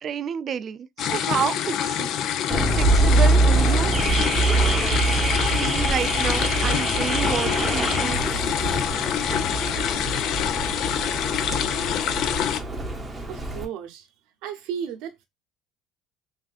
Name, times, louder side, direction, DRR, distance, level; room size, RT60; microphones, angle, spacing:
voice 1, 0.0-2.1 2.5-3.9 5.5-8.3, right 7 dB, 40° right, 0.3 m, -30 dB
sound 1, 1.0-12.6, left 9 dB, 60° left, 0.4 m, -26 dB
Car / Alarm, 2.5-13.7, right 2 dB, 15° right, 0.7 m, -24 dB
voice 2, 13.3-14.1 14.4-15.2, right 8 dB, 75° right, 0.8 m, -34 dB
3.3 x 2.6 x 2.4 m
supercardioid pair, 110°, 0 cm